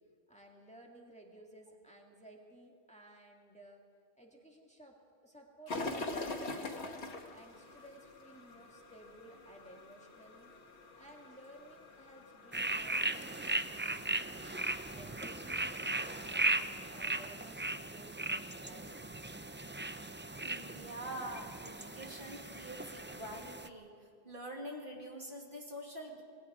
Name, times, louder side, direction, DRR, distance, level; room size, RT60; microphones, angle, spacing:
voice 1, 0.3-3.8 4.2-4.9 5.2-6.9 7.3-10.5 10.9-14.4 14.9-19.4, right 1 dB, 5° left, 0 dB, 2.1 m, -56 dB
sound 1, 5.7-17.5, left 2 dB, 85° left, 1.8 m, -46 dB
sound 2, 12.5-23.7, right 2 dB, 20° right, 0.3 m, -37 dB
voice 2, 20.4-23.9 24.2-26.2, right 1 dB, 50° right, 0 dB, 2.5 m, -45 dB
26.0 x 20.0 x 5.0 m, 2.3 s
omnidirectional pair, 1.1 m